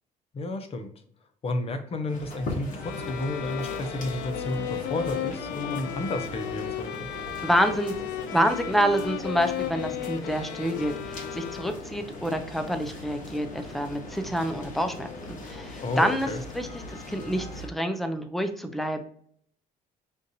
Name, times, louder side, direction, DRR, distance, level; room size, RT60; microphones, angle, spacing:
voice 1, 0.3-0.9 1.4-7.1 15.8-16.4, left 2 dB, 35° left, 7 dB, 0.7 m, -32 dB
sound 1, 2.1-17.7, left 2 dB, 50° left, 1.0 m, -39 dB
sound 2, 2.8-12.0, left 11 dB, 85° left, 0.4 m, -35 dB
voice 2, 7.4-7.9 8.3-16.3 16.5-19.0, equal, ahead, 7 dB, 0.5 m, -27 dB
5.2 x 2.5 x 2.7 m, 0.64 s
cardioid pair, 110°, 17 cm